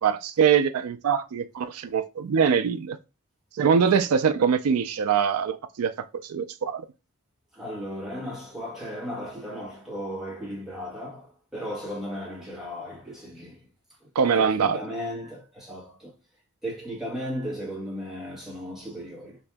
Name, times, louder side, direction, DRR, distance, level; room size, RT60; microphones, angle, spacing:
voice 1, 0.0-3.0 3.5-5.9 6.2-6.8 14.2-14.8, right 7 dB, 75° right, 0.4 m, -23 dB
voice 2, 7.5-13.7 14.0-14.1 14.4-16.1 16.6-19.4, equal, ahead, 1.3 m, -36 dB
2.9 x 2.7 x 3.4 m
head